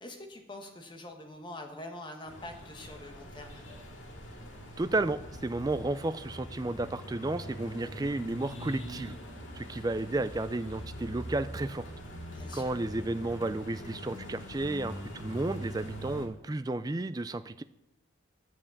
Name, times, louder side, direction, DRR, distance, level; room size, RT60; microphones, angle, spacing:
voice 1, 0.0-3.6 12.3-12.7, left 1 dB, 25° left, 3 dB, 1.4 m, -45 dB
sound 1, 2.3-16.3, equal, 70° left, 2.2 m, -43 dB
voice 2, 4.8-9.2 9.5-11.9 12.5-17.6, right 2 dB, 20° right, 12 dB, 0.3 m, -32 dB
9.9 x 7.4 x 7.1 m, 0.87 s
head